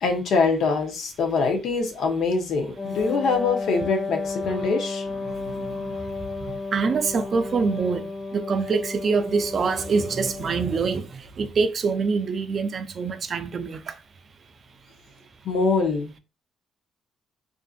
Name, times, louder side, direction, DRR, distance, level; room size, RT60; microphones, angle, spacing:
voice 1, 0.0-5.1 15.4-16.2, left 4 dB, 75° left, 0.7 m, -24 dB
Wind instrument woodwind instrument, 2.7-10.8, left 3 dB, 25° left, 0.5 m, -33 dB
voice 2, 5.2-6.0 6.4-14.0, right 5 dB, 50° right, 0.4 m, -26 dB
2.5 x 2.5 x 2.3 m
cardioid pair, 90°, 0 cm